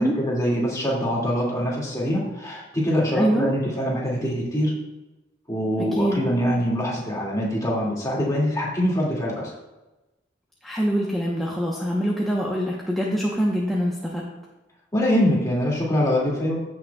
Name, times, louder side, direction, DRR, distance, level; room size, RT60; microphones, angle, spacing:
voice 1, 0.0-4.7 5.5-9.5 14.9-16.6, equal, 20° left, -4 dB, 2.2 m, -24 dB
voice 2, 3.1-3.5 5.9-6.2 10.6-14.2, equal, ahead, -4 dB, 0.8 m, -24 dB
15.0 x 6.2 x 2.3 m, 1.0 s
head